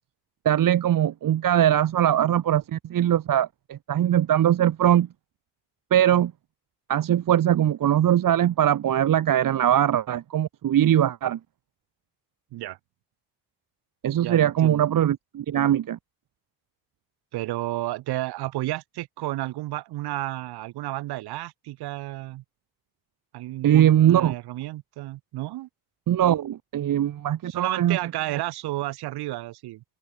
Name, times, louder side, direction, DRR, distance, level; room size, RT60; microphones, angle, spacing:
voice 1, 0.4-5.1 5.9-6.3 6.9-11.4 14.0-16.0 23.6-24.3 26.1-28.0, right 11 dB, 60° right, 1.4 m, -21 dB
voice 2, 14.2-14.8 17.3-22.4 23.3-25.7 27.5-29.8, right 16 dB, 80° right, 7.2 m, -32 dB
supercardioid pair, 55°, 38 cm